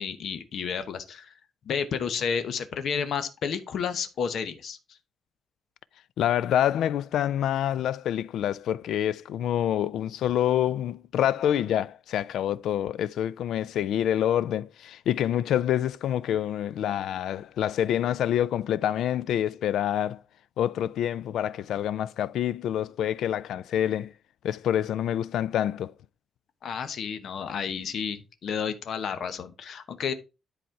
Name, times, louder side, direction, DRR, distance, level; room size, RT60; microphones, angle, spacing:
voice 1, 0.0-1.3 1.7-4.8 26.6-30.1, left 6 dB, 60° left, 1.0 m, -31 dB
voice 2, 6.2-20.2 20.6-24.1 24.4-25.9, left 10 dB, 80° left, 0.4 m, -27 dB
10.5 x 4.2 x 4.5 m
cardioid pair, 155°, 0 cm